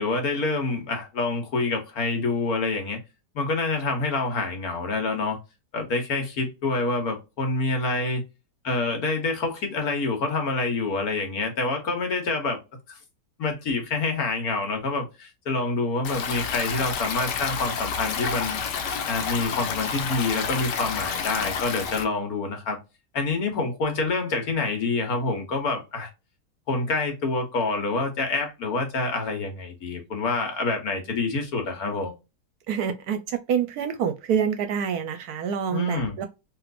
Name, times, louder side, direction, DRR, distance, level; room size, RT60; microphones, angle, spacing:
voice 1, 0.0-3.0 3.3-5.4 5.7-8.2 8.6-12.6 12.9-13.0 13.4-18.6 19.1-22.8 23.1-26.1 26.7-32.1 35.7-36.3, left 3 dB, 60° left, 1.5 m, -27 dB
Stream, 16.0-22.0, left 6 dB, 80° left, 1.3 m, -30 dB
voice 2, 32.7-36.3, right 8 dB, 70° right, 1.0 m, -27 dB
3.2 x 3.0 x 2.4 m
omnidirectional pair, 1.8 m